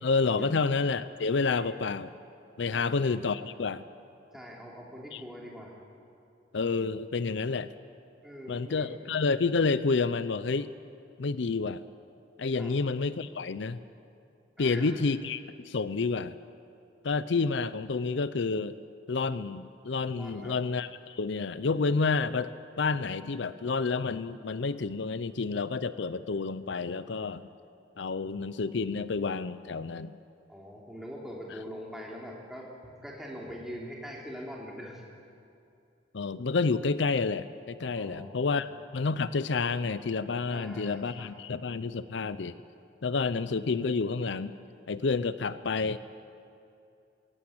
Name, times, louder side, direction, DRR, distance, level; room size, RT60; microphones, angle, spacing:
voice 1, 0.0-2.1 2.6-3.8 5.1-5.2 6.5-7.7 8.5-10.7 11.2-11.8 12.4-13.8 14.6-16.4 17.0-18.8 19.1-27.5 28.0-30.2 36.1-38.7 38.9-42.6 43.0-44.6 44.9-46.0, left 4 dB, 75° left, 15 dB, 0.6 m, -29 dB
voice 2, 4.3-5.8 8.2-9.0 12.5-12.8 14.6-15.0 20.2-20.6 30.5-35.0 37.9-38.7 40.5-41.3, equal, ahead, -3 dB, 3.3 m, -43 dB
20.5 x 17.5 x 8.7 m, 2.6 s
head